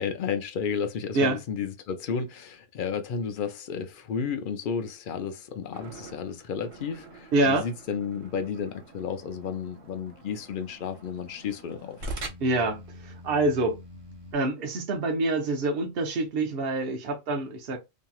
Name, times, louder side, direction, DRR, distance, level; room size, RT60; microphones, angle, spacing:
voice 1, 0.0-12.0, left 6 dB, 60° left, 0.5 m, -32 dB
sound 1, 5.7-14.3, right 1 dB, 80° right, 1.2 m, -44 dB
voice 2, 7.3-7.7 12.4-13.8 14.3-17.8, right 2 dB, 55° right, 0.8 m, -26 dB
2.9 x 2.6 x 2.3 m
omnidirectional pair, 1.3 m